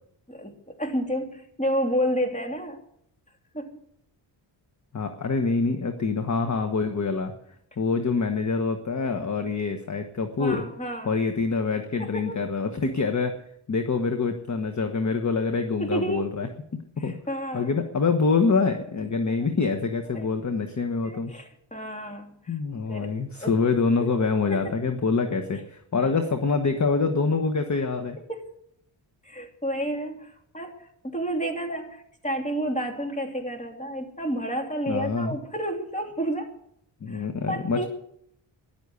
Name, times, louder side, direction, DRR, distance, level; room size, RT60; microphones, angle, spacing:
voice 1, 0.3-2.8 3.5-3.8 10.4-11.1 12.0-12.4 15.8-16.4 17.0-17.7 20.1-20.3 21.0-22.5 22.9-23.1 23.4-23.5 24.0-24.1 24.5-24.7 25.9-26.1 28.3-28.4 29.2-30.7 31.0-36.5 37.1-37.9, equal, 15° left, 3 dB, 2.9 m, -30 dB
voice 2, 4.9-7.3 7.8-10.7 11.0-13.4 13.7-17.2 17.5-21.3 22.5-28.2 34.9-35.4 37.0-37.8, left 4 dB, 35° left, 6 dB, 1.3 m, -25 dB
14.0 x 11.0 x 8.3 m, 0.73 s
wide cardioid pair, 110°, 48 cm